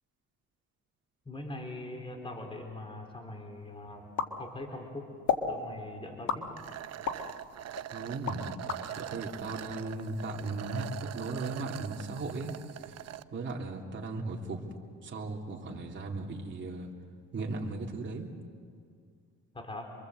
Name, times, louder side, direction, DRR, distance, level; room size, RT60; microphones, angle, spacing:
voice 1, 1.3-4.1 4.4-5.1 5.5-6.6 19.5-19.9, left 2 dB, 15° left, 2 dB, 3.7 m, -42 dB
sound 1, 4.2-4.9 5.3-5.5 6.3-7.3 7.8-8.8, left 7 dB, 65° left, 1.9 m, -32 dB
sound 2, 6.6-13.2, right 12 dB, 55° right, 0.8 m, -42 dB
voice 2, 7.9-8.5 9.0-12.5 12.8-13.0 13.3-14.6 15.0-16.9 17.3-18.3, right 3 dB, 35° right, -1 dB, 3.1 m, -37 dB
27.0 x 23.5 x 7.9 m, 2.2 s
cardioid pair, 105°, 31 cm